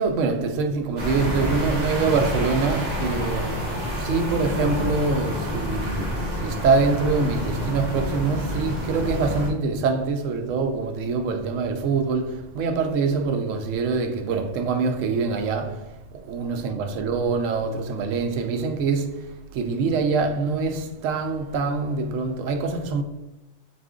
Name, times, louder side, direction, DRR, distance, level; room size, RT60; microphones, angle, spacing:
voice 1, 0.0-16.0 16.2-23.0, right 4 dB, 85° right, 0.9 m, -25 dB
sound 1, 1.0-9.5, equal, 40° right, 0.9 m, -28 dB
4.2 x 2.5 x 3.5 m
omnidirectional pair, 1.3 m